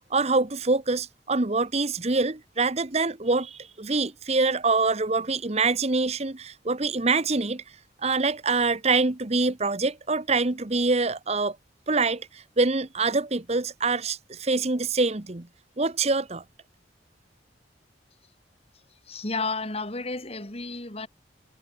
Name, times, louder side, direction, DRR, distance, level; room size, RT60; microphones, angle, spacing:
voice 1, 0.1-7.6 8.0-11.6 11.9-15.5 15.8-16.4, right 3 dB, 35° right, 1.1 m, -25 dB
voice 2, 19.0-21.1, left 3 dB, 35° left, 3.1 m, -32 dB
head